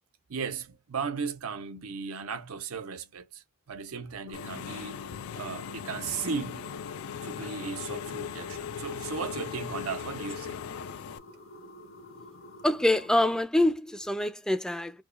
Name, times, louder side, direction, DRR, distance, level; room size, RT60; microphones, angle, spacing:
voice 1, 0.3-5.0 5.4-6.7 7.2-10.7, right 5 dB, 90° right, 0.7 m, -36 dB
Engine / Mechanisms, 4.3-11.2, left 8 dB, 80° left, 0.4 m, -39 dB
sound 1, 4.3-13.4, left 1 dB, 65° left, 0.8 m, -49 dB
voice 2, 12.6-15.0, left 1 dB, 5° left, 0.4 m, -25 dB
4.6 x 2.3 x 2.3 m
head